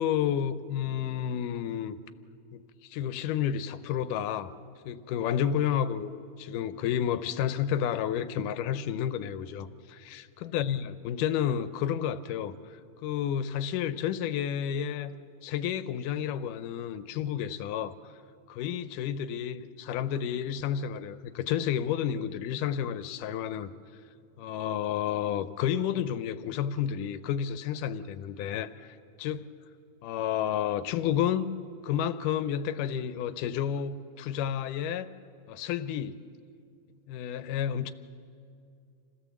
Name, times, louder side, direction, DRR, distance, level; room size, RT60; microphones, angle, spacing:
voice 1, 0.0-2.0 2.5-4.5 4.9-15.1 15.4-18.1 18.5-23.7 24.4-28.7 29.2-29.5 30.0-31.5 31.8-35.1 35.5-36.2 37.1-37.9, left 9 dB, 90° left, 12 dB, 2.3 m, -31 dB
28.0 x 16.5 x 7.3 m, 2.4 s
omnidirectional pair, 3.6 m